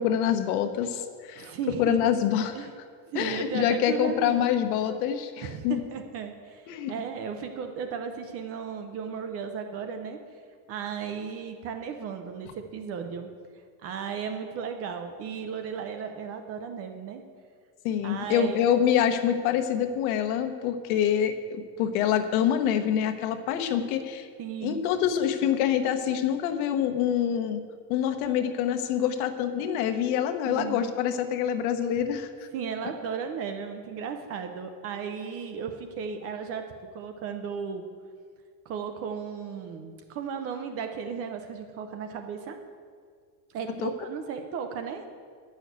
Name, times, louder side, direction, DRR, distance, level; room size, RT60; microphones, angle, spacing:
voice 1, 0.0-1.5 1.8-2.7 3.1-5.8 6.7-6.9 17.8-24.3 24.6-27.6 27.9-32.5 43.8-43.9, left 9 dB, 80° left, 7 dB, 1.1 m, -26 dB
voice 2, 1.4-2.0 2.5-2.7 3.1-4.5 5.4-10.4 10.7-13.3 13.8-17.2 18.0-18.6 24.4-24.8 30.5-30.8 32.5-36.6 36.9-37.9 38.7-42.6 43.5-45.3, right 6 dB, 35° right, 6 dB, 0.5 m, -35 dB
10.5 x 6.4 x 8.0 m, 2.1 s
cardioid pair, 180°, 43 cm